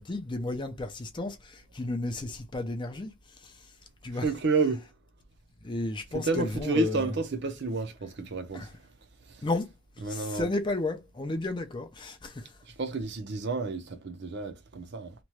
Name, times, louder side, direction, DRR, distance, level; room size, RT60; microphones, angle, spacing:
voice 1, 0.0-3.1 4.0-4.2 5.6-7.1 8.5-8.7 9.4-9.7 10.1-12.3, left 2 dB, 20° left, 0.4 m, -32 dB
voice 2, 4.1-4.8 6.1-8.7 9.3-9.4 10.0-10.5 12.8-15.1, right 3 dB, 55° right, 0.6 m, -30 dB
3.0 x 2.2 x 3.0 m
head